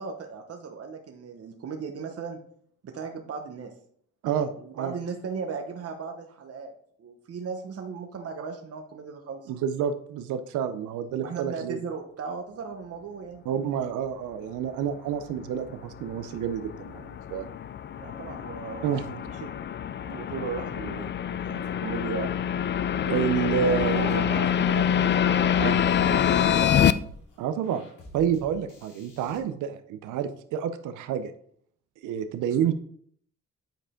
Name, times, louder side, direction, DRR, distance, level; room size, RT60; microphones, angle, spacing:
voice 1, 0.0-2.4 2.8-3.7 4.6-6.7 7.0-9.5 11.2-13.4 18.0-19.5 20.1-22.3 23.6-26.9, right 5 dB, 50° right, 3 dB, 1.1 m, -37 dB
voice 2, 4.2-5.0 9.5-11.8 13.5-17.5 18.8-19.1 23.1-24.2 25.6-25.8 27.4-27.8 28.1-31.3 32.0-32.7, right 8 dB, 85° right, 10 dB, 0.6 m, -29 dB
sound 1, 15.4-26.9, left 9 dB, 40° left, 0.4 m, -26 dB
sound 2, 23.7-29.4, left 1 dB, 85° left, 2.7 m, -49 dB
9.0 x 5.0 x 3.7 m, 0.62 s
cardioid pair, 90°, 30 cm